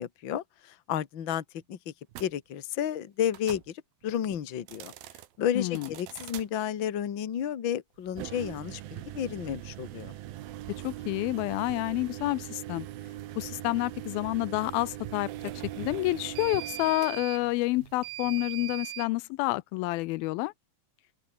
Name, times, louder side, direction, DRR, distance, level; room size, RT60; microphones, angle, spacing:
voice 1, 0.0-1.9 2.2-4.9 5.4-10.1, left 9 dB, 45° left, 1.8 m, -32 dB
sound 1, 2.1-2.3 3.3-3.7 4.6-5.3 5.7-6.5 8.1-19.1, right 14 dB, 80° right, 3.1 m, -40 dB
voice 2, 5.6-5.9 10.8-12.9 13.4-15.3 15.8-20.5, left 20 dB, 85° left, 2.5 m, -29 dB
open air
omnidirectional pair, 4.2 m